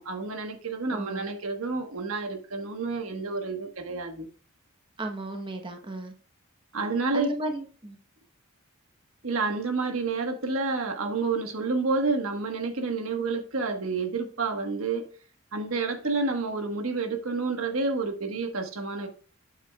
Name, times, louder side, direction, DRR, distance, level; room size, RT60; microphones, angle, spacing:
voice 1, 0.0-4.3 6.7-7.3 9.2-15.1 15.5-19.1, right 3 dB, 80° right, 1.3 m, -29 dB
voice 2, 0.9-1.3 5.0-6.1 7.1-8.0, right 1 dB, 25° right, 1.0 m, -34 dB
8.6 x 8.1 x 2.3 m
head